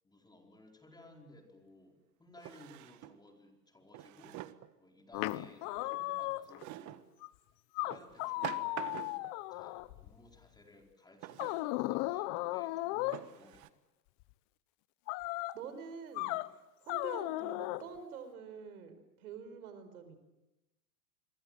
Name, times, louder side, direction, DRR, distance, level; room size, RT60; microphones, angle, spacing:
voice 1, 0.0-4.4 4.8-7.1 7.8-9.2 9.5-13.8, left 2 dB, 10° left, 2 dB, 4.7 m, -59 dB
Drawer open or close, 1.0-1.1 2.4-3.2 3.9-4.7 6.6-7.1 7.9-9.4 11.2-11.7 12.4-12.5 13.1-13.7, right 16 dB, 40° right, 1.4 m, -45 dB
sound 1, 5.1-6.6 7.2-7.3 7.8-10.2 11.4-13.2 15.1-15.6 16.2-16.5 16.9-17.8, left 19 dB, 45° left, 1.1 m, -36 dB
voice 2, 15.5-16.3 16.8-18.9 19.2-20.2, right 6 dB, 70° right, 10 dB, 4.9 m, -46 dB
27.0 x 24.0 x 7.7 m, 0.95 s
hypercardioid pair, 115°, 46 cm